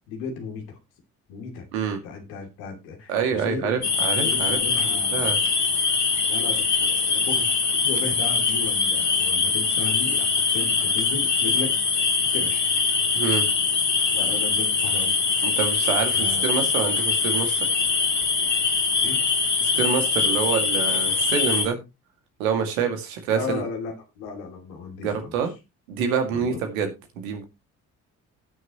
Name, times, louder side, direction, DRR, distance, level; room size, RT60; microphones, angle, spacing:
voice 1, 0.1-0.8 1.3-3.9 4.2-5.4 6.3-7.5 7.8-11.7 12.3-12.7 14.1-15.1 16.1-16.4 19.0-19.2 23.3-25.4 26.3-26.6, left 4 dB, 70° left, 3 dB, 2.7 m, -35 dB
voice 2, 3.1-4.6 5.1-5.4 13.1-13.5 15.4-17.6 19.6-21.8 22.4-23.6 25.0-25.5 25.9-27.5, right 6 dB, 75° right, 6 dB, 2.2 m, -26 dB
sound 1, 3.8-21.7, left 5 dB, 40° left, 3.1 m, -23 dB
18.0 x 6.5 x 3.0 m, 0.25 s
figure-of-eight pair, 45°, 42 cm